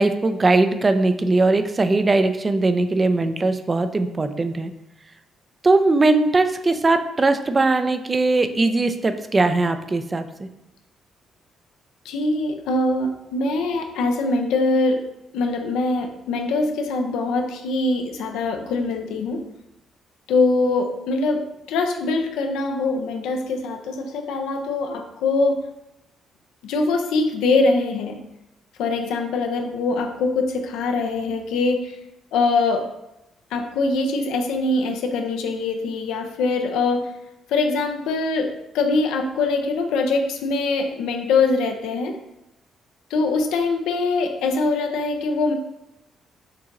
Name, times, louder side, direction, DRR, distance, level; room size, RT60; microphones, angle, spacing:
voice 1, 0.0-4.7 5.6-10.2, right 2 dB, 30° right, 9 dB, 0.4 m, -20 dB
voice 2, 12.0-15.0 15.3-19.4 20.3-25.6 26.6-28.2 28.8-32.0 32.3-32.9 33.5-37.1 37.5-42.2 43.1-45.5, left 3 dB, 80° left, 4 dB, 0.5 m, -23 dB
6.6 x 2.9 x 2.5 m, 0.88 s
supercardioid pair, 55°, 0 cm